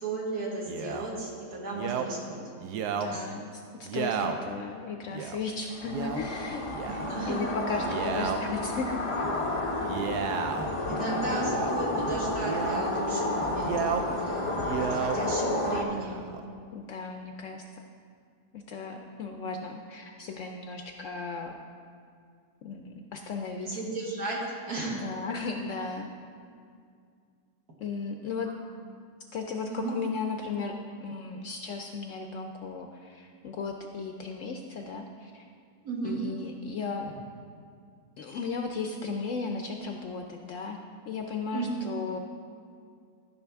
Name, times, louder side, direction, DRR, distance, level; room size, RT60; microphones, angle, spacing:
voice 1, 0.0-2.4 3.1-3.3 6.8-7.4 10.9-16.2 23.6-24.4 24.7-25.0 29.7-30.0 35.8-36.2 41.5-41.9, right 3 dB, 70° right, -4 dB, 2.2 m, -34 dB
Male speech man speaking, 0.7-1.1 1.7-2.1 2.6-3.1 3.8-4.4 5.1-5.4 5.9-6.2 6.7-7.2 7.7-8.4 9.8-10.7 11.4-11.8 12.4-12.9 13.6-14.1 14.5-15.2 15.8-16.4, right 7 dB, 90° right, 1.2 m, -33 dB
voice 2, 2.9-6.6 6.9-9.3 11.0-11.3 15.2-15.3 16.7-17.6 18.5-21.5 22.6-23.8 24.9-26.1 27.8-28.5 29.3-35.4 36.0-37.1 38.2-40.8 41.1-42.2, left 4 dB, 65° left, 3 dB, 0.8 m, -35 dB
sound 1, 5.7-15.8, left 2 dB, 50° left, 0.3 m, -31 dB
13.5 x 5.6 x 3.5 m, 2.3 s
omnidirectional pair, 1.7 m